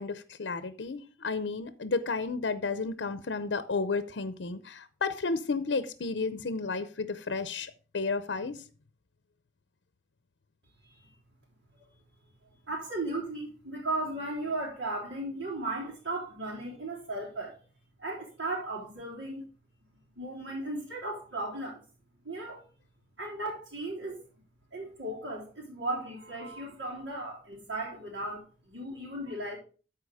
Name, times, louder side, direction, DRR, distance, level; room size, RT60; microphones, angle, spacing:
voice 1, 0.0-8.6, left 4 dB, 80° left, 0.7 m, -32 dB
voice 2, 10.8-11.2 12.7-17.6 18.0-19.4 20.2-21.8 22.2-22.6 23.2-24.2 24.7-29.6, right 2 dB, 80° right, 3.6 m, -36 dB
13.5 x 4.8 x 4.8 m
head